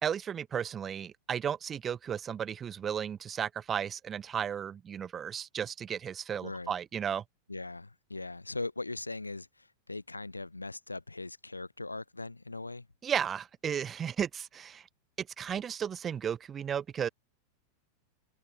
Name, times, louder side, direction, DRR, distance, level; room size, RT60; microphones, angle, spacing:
voice 1, 0.0-7.2 13.0-14.8 15.2-17.1, right 8 dB, 25° right, 4.6 m, -34 dB
voice 2, 7.5-12.9, left 2 dB, 80° left, 5.0 m, -40 dB
open air
figure-of-eight pair, 90°, 0 cm